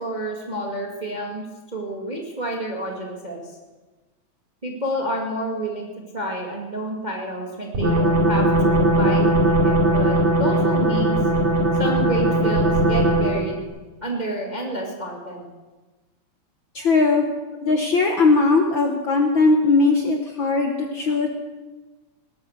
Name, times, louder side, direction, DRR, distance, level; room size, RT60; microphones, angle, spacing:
voice 1, 0.0-1.4 1.7-3.6 4.6-5.9 6.1-9.4 9.6-11.2 11.8-13.5 14.0-15.4, right 1 dB, 15° right, 0 dB, 1.8 m, -29 dB
sound 1, 7.7-13.5, right 1 dB, 75° right, 5.4 m, -19 dB
voice 2, 16.7-17.2 17.6-21.3, left 3 dB, 55° left, 3 dB, 1.5 m, -19 dB
18.5 x 11.5 x 6.6 m, 1.2 s
omnidirectional pair, 3.3 m